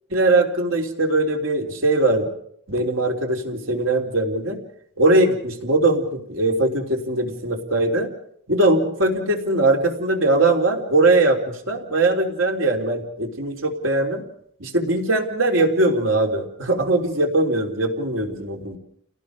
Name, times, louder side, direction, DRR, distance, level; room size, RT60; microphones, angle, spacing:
voice 1, 0.1-2.3 2.7-4.6 5.0-8.1 8.5-14.2 14.6-18.8, right 2 dB, 90° right, 2 dB, 3.7 m, -20 dB
29.5 x 18.5 x 5.1 m, 0.68 s
head